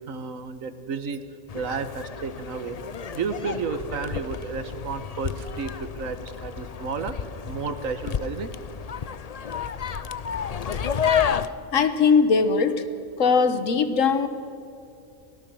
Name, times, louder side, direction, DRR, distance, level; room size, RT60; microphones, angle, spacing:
voice 1, 0.1-1.2 1.5-2.8 3.1-7.2 7.4-8.5 11.3-11.7, right 5 dB, 85° right, 10 dB, 1.6 m, -32 dB
sound 1, 1.5-11.5, left 7 dB, 50° left, 0.5 m, -30 dB
voice 2, 11.7-12.8 13.2-14.3, left 5 dB, 75° left, 10 dB, 1.6 m, -20 dB
23.5 x 18.0 x 6.3 m, 2.7 s
omnidirectional pair, 1.4 m